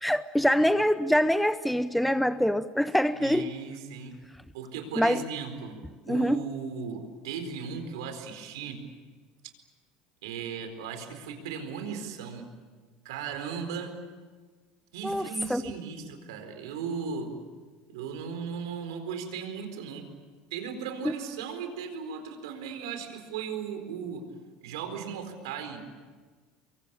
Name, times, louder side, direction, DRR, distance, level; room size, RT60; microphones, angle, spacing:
voice 1, 0.0-3.5 5.0-5.2 6.1-6.4 15.0-15.6, equal, ahead, 12 dB, 0.7 m, -25 dB
voice 2, 3.2-4.2 4.5-5.8 6.1-8.8 10.2-12.5 13.0-14.0 14.9-17.3 17.9-20.1 20.5-24.2 24.6-25.8, right 6 dB, 90° right, 7 dB, 4.3 m, -37 dB
25.0 x 23.5 x 8.8 m, 1.5 s
supercardioid pair, 100°, 2 cm